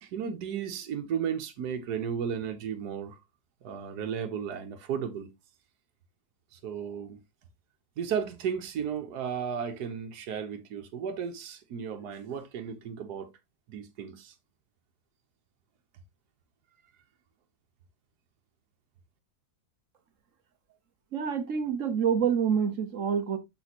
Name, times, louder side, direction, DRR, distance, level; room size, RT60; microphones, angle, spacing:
voice 1, 0.0-3.2 3.6-5.3 6.5-7.2 8.0-13.3 13.7-14.3, right 7 dB, 75° right, 1.5 m, -34 dB
voice 2, 21.1-23.4, right 7 dB, 55° right, 1.2 m, -27 dB
6.6 x 6.2 x 2.9 m
omnidirectional pair, 1.7 m